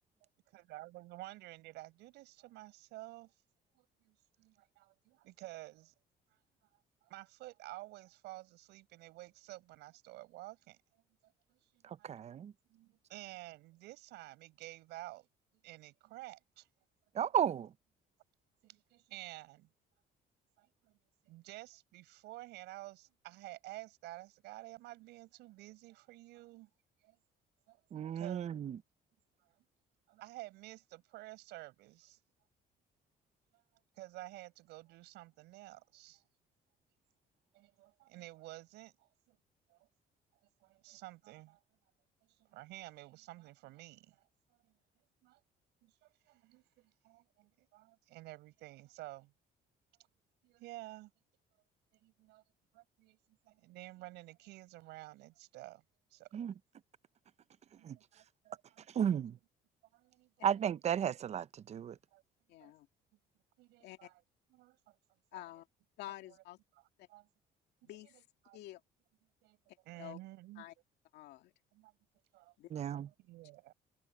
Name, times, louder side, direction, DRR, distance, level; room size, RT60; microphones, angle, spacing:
voice 1, 0.5-3.3 3.7-5.9 7.0-10.8 11.2-15.3 15.6-16.7 17.1-17.3 18.6-19.7 20.6-21.0 21.2-26.7 27.0-27.2 27.7-28.6 29.4-29.5 30.1-32.2 34.0-36.2 37.5-39.4 39.7-39.9 40.6-41.6 42.4-44.2 44.6-44.7 45.2-45.4 45.8-49.3 50.4-51.1 52.0-52.4 52.7-53.2 53.4-55.8 56.1-56.5 57.7-58.8 59.9-60.3 62.1-62.2 62.6-62.7 63.6-64.2 64.5-64.9 65.3-65.4 67.1-67.3 67.8-67.9 68.4-68.6 69.4-69.6 69.8-70.6 71.7-71.9 72.3-72.5 73.2-73.7, right 19 dB, 90° right, 6.6 m, -51 dB
voice 2, 11.8-12.5 17.1-17.7 27.9-28.8 56.3-56.5 57.8-58.0 58.9-59.4 60.4-62.0 72.7-73.1, right 9 dB, 40° right, 0.6 m, -34 dB
voice 3, 62.5-62.9 63.8-64.1 65.3-65.7 66.0-66.6 67.0-67.1 67.8-68.3 68.5-68.8 70.0-70.2 70.6-70.7 71.1-71.5 72.6-72.7, left 15 dB, 85° left, 2.2 m, -49 dB
cardioid pair, 110°, 17 cm